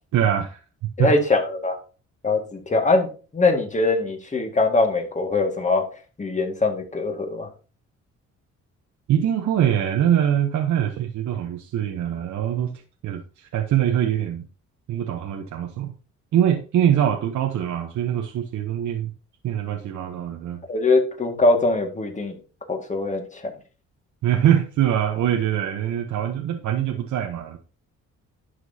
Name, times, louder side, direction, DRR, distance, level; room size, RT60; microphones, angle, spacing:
voice 1, 0.1-0.6 1.0-1.1 9.1-14.5 14.9-15.9 16.3-19.1 19.4-20.6 24.2-27.6, right 10 dB, 75° right, 3 dB, 1.1 m, -23 dB
voice 2, 1.0-1.8 2.2-5.9 6.2-7.5 20.7-22.4 22.7-23.5, left 3 dB, 25° left, 4 dB, 2.0 m, -22 dB
11.5 x 6.2 x 2.8 m, 0.36 s
cardioid pair, 90°, 30 cm